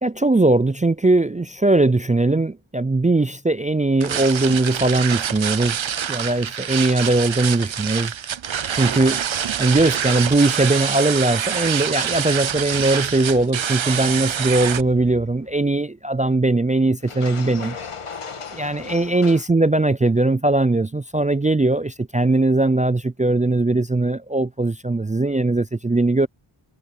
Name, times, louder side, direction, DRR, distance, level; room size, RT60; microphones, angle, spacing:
voice 1, 0.0-5.8 6.1-8.1 8.8-9.2 9.6-17.8 18.5-26.3, right 2 dB, 15° right, 0.4 m, -20 dB
sound 1, 4.0-14.8, right 8 dB, 65° right, 0.9 m, -26 dB
sound 2, 13.9-15.7 17.0-19.5, left 5 dB, 90° left, 2.1 m, -37 dB
wide cardioid pair, 65°, 50 cm